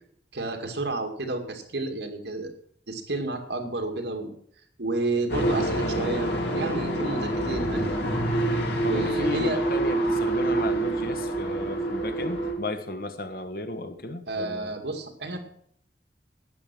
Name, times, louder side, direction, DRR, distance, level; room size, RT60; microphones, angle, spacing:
voice 1, 0.3-2.5 2.9-4.4 4.8-7.9 8.8-9.6 14.3-15.4, right 2 dB, 75° right, 4 dB, 2.1 m, -31 dB
sound 1, 5.3-12.5, right 1 dB, 70° left, 3.1 m, -27 dB
voice 2, 8.8-14.7, left 2 dB, 55° left, 8 dB, 1.4 m, -34 dB
12.5 x 9.5 x 6.0 m, 0.64 s
head